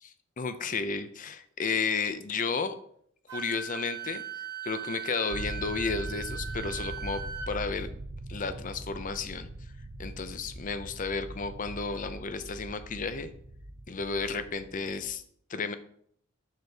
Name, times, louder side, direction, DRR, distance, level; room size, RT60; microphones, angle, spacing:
voice 1, 0.0-2.7 3.3-4.2 4.6-7.2 7.5-7.9 8.3-9.5 10.0-13.3 13.9-15.2 15.5-15.8, left 4 dB, 40° left, 11 dB, 0.5 m, -32 dB
Wind instrument woodwind instrument, 3.3-7.5, right 8 dB, 60° right, 1.6 m, -39 dB
sound 1, 5.3-15.1, right 1 dB, 40° right, 0.7 m, -41 dB
6.6 x 6.5 x 3.4 m, 0.64 s
head